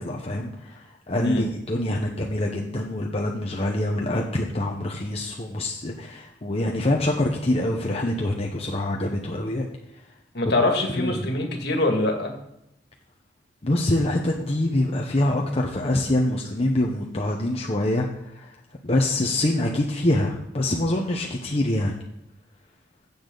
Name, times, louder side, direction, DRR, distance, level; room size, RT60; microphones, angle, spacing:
voice 1, 0.0-9.7 11.0-11.3 13.6-18.1 18.3-18.5 18.8-21.9, left 1 dB, 35° left, -1 dB, 1.0 m, -25 dB
voice 2, 1.2-1.5 10.3-12.3, left 2 dB, 65° left, 2 dB, 2.1 m, -24 dB
15.5 x 7.1 x 4.0 m, 0.85 s
head